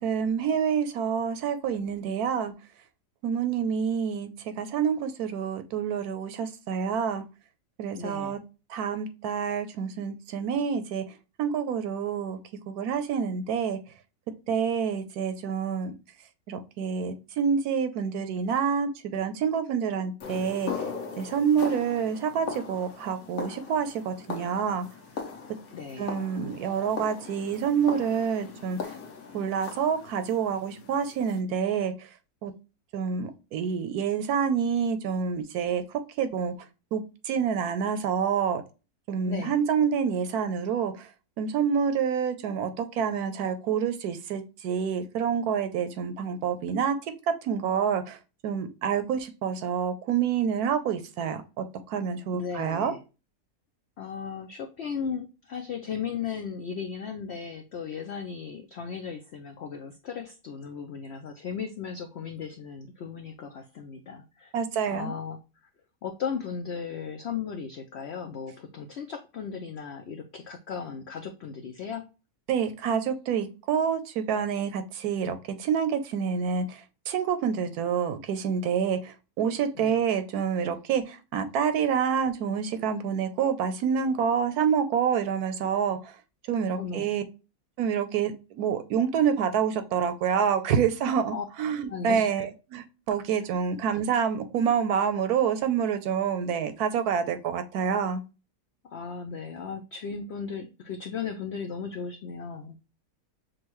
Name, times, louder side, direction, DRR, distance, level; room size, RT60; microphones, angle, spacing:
voice 1, 0.0-2.5 3.2-7.2 7.8-8.4 8.7-11.0 11.4-12.4 12.7-13.8 14.5-15.9 16.5-20.7 21.2-24.9 26.0-28.9 29.3-31.9 32.4-32.5 32.9-36.5 36.9-38.6 39.1-41.1 41.4-47.0 47.3-48.2 48.4-52.9 64.5-65.1 72.5-86.1 86.5-87.2 87.8-98.2, right 7 dB, 75° right, 9 dB, 1.1 m, -27 dB
voice 2, 7.9-8.4 25.7-26.1 39.3-39.6 52.3-53.0 54.0-64.5 64.9-65.4 66.0-72.0 79.7-80.0 86.7-87.1 91.3-91.4 91.9-92.5 98.9-102.8, left 6 dB, 80° left, 5 dB, 0.5 m, -36 dB
sound 1, 20.2-31.4, left 5 dB, 65° left, 1.2 m, -39 dB
6.3 x 2.3 x 3.0 m, 0.31 s
omnidirectional pair, 1.7 m